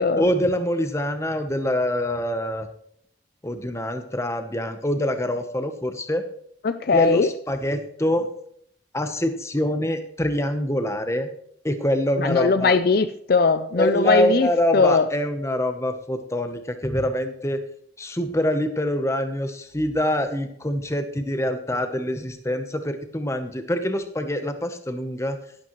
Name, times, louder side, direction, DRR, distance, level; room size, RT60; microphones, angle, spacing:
voice 1, 0.2-2.7 3.4-6.2 6.9-8.3 8.9-11.3 11.6-12.8 13.8-17.6 18.0-25.4, equal, 15° left, 8 dB, 0.9 m, -25 dB
voice 2, 6.6-7.3 12.2-14.5 14.7-15.1, left 4 dB, 55° left, 11 dB, 0.5 m, -19 dB
11.5 x 11.5 x 3.1 m, 0.69 s
head